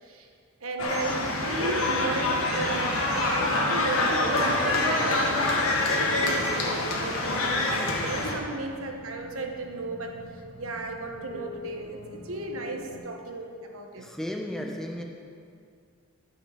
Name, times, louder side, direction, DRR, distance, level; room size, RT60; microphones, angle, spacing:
voice 1, 0.6-5.6 5.8-14.1, right 3 dB, 75° right, 3 dB, 1.2 m, -35 dB
sound 1, 0.8-8.3, left 2 dB, 80° left, 1.8 m, -26 dB
sound 2, 3.8-13.0, left 2 dB, 30° left, 2.6 m, -47 dB
voice 2, 14.0-15.0, left 1 dB, ahead, 1 dB, 0.9 m, -34 dB
12.5 x 6.5 x 6.4 m, 2.3 s
head